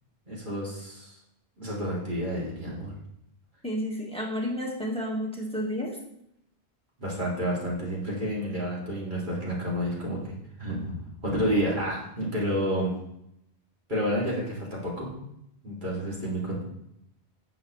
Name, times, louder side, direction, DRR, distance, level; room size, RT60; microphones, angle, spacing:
voice 1, 0.3-1.1 1.6-2.9 7.0-10.3 10.6-12.9 13.9-15.1 15.6-16.6, equal, 45° right, -5 dB, 3.0 m, -30 dB
voice 2, 3.6-6.0, equal, 5° left, -1 dB, 1.6 m, -31 dB
11.0 x 7.6 x 3.2 m, 0.77 s
omnidirectional pair, 1.1 m